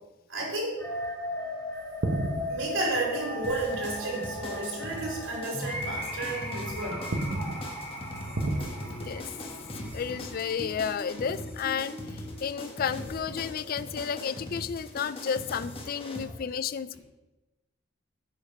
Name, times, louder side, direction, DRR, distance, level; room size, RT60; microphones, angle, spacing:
voice 1, 0.3-0.8 2.5-7.0 8.3-8.6 9.1-9.5 16.2-16.3, right 2 dB, 80° right, -3 dB, 3.0 m, -32 dB
sound 1, 0.8-14.8, left 1 dB, 15° left, 1.9 m, -38 dB
sound 2, 1.8-4.8 5.0-5.3 5.8-6.6 6.9-11.1, right 1 dB, 60° right, 0.9 m, -35 dB
sound 3, 3.4-16.2, left 1 dB, 30° left, 1.3 m, -41 dB
voice 2, 9.9-17.0, left 7 dB, 50° left, 15 dB, 0.3 m, -32 dB
9.2 x 5.1 x 5.3 m, 1.1 s
head